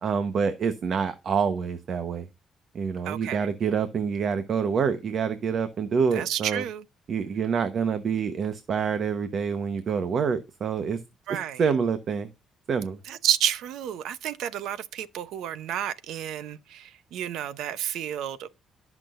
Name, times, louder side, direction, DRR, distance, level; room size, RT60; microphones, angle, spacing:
voice 1, 0.0-2.3 2.7-6.6 7.1-11.0 11.6-12.3 12.7-13.0, right 6 dB, 55° right, 1.0 m, -27 dB
voice 2, 3.0-3.5 6.1-6.8 11.3-11.6 13.1-18.5, right 10 dB, 85° right, 0.8 m, -30 dB
18.0 x 6.1 x 2.5 m
cardioid pair, 90°, 0 cm